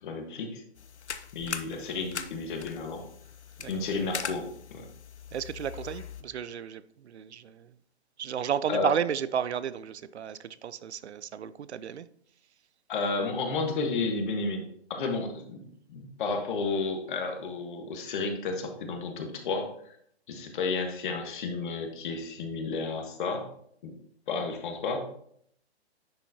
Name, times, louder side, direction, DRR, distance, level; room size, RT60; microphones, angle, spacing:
voice 1, 0.0-0.6 1.3-3.0 3.7-4.9 8.7-8.9 12.9-14.6 14.9-20.0 20.3-23.5 23.8-23.9 24.3-25.2, left 4 dB, 50° left, 1.4 m, -32 dB
sound 1, 0.8-6.2, left 7 dB, 85° left, 0.7 m, -41 dB
voice 2, 5.3-7.7 8.2-12.1 15.0-15.1, right 9 dB, 85° right, 0.5 m, -33 dB
10.5 x 4.4 x 2.8 m
hypercardioid pair, 135°, 33 cm